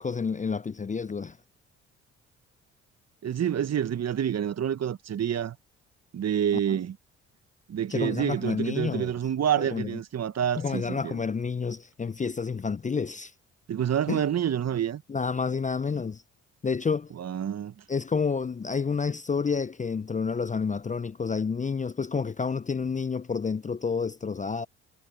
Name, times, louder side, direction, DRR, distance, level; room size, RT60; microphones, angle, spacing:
voice 1, 0.0-1.4 6.7-6.8 7.9-9.2 9.6-9.9 10.6-13.3 14.1-14.2 15.1-16.2 16.6-17.1 17.9-24.7, left 5 dB, 20° left, 0.7 m, -29 dB
voice 2, 3.2-5.6 6.1-7.0 7.7-11.2 13.7-15.0 17.1-17.7, right 9 dB, 45° right, 1.6 m, -28 dB
hypercardioid pair, 50°, 35 cm